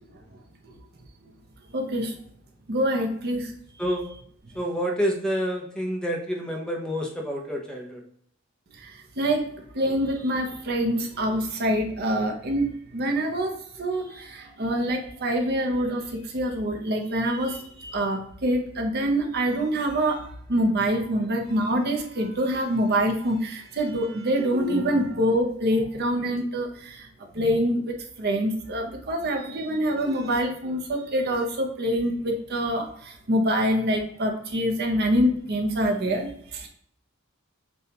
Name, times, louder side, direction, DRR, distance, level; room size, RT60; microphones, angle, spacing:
voice 1, 1.7-2.1 2.7-3.5 9.2-13.5 13.8-27.1 27.3-36.7, equal, 50° right, 2 dB, 0.7 m, -25 dB
voice 2, 4.5-8.0, equal, 5° left, 0 dB, 0.6 m, -28 dB
6.9 x 2.3 x 2.8 m, 0.64 s
head